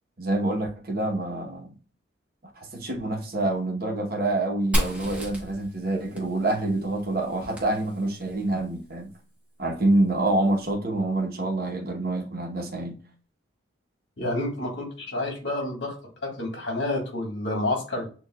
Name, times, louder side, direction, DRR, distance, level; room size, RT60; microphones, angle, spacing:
voice 1, 0.2-1.7 2.6-9.1 9.6-13.0, right 2 dB, 50° right, 1.0 m, -26 dB
Fire, 4.7-8.4, equal, 5° right, 1.0 m, -32 dB
voice 2, 14.2-15.9 16.2-18.1, left 2 dB, 60° left, 1.6 m, -29 dB
6.6 x 2.5 x 2.3 m
head